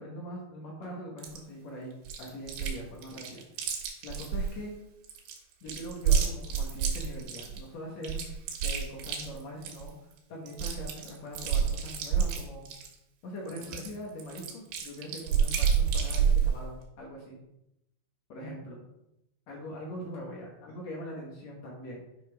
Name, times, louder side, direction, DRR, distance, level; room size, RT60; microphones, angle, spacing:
voice 1, 0.0-4.7 5.6-8.2 8.6-9.9 10.3-12.7 13.2-17.4 18.3-18.8 19.5-22.0, equal, 85° left, -2 dB, 1.5 m, -42 dB
Chewing mastication, 1.2-1.4 2.1-2.8 3.0-4.5 5.0-7.6 8.0-9.9 10.2-10.3 10.5-12.9 13.5-16.5, right 7 dB, 85° right, 3.5 m, -28 dB
9.6 x 5.4 x 3.3 m, 0.86 s
omnidirectional pair, 5.0 m